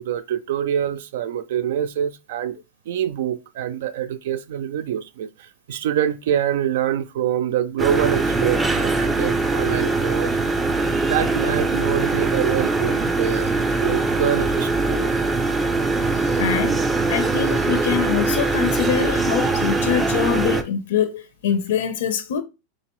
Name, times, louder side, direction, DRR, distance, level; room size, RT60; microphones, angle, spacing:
voice 1, 0.0-2.6 2.9-10.4 11.0-13.5 13.8-15.1, right 10 dB, 70° right, 0.4 m, -25 dB
sound 1, 7.8-20.6, right 3 dB, 10° right, 0.4 m, -22 dB
voice 2, 16.3-16.8 17.1-22.4, left 9 dB, 90° left, 0.5 m, -24 dB
4.2 x 3.7 x 3.0 m
supercardioid pair, 165°, 0 cm